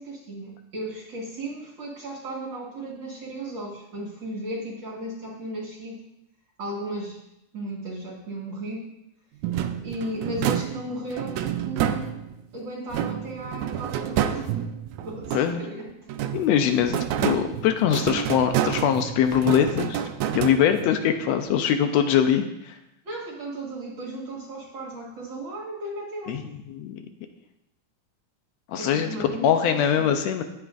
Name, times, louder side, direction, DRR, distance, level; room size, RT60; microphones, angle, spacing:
voice 1, 0.0-6.0 6.6-7.2 7.5-8.9 9.8-12.2 12.5-14.6 15.0-16.1 23.0-26.4 28.8-30.1, right 1 dB, 45° right, -3 dB, 1.8 m, -35 dB
sound 1, 9.4-12.5 12.9-15.7 16.1-21.0, right 10 dB, 80° right, 1.8 m, -29 dB
voice 2, 16.3-20.0 20.3-22.7 26.3-26.4 26.7-27.0 28.7-30.4, left 9 dB, 80° left, 7 dB, 1.6 m, -22 dB
17.0 x 5.9 x 2.5 m, 0.85 s
omnidirectional pair, 3.5 m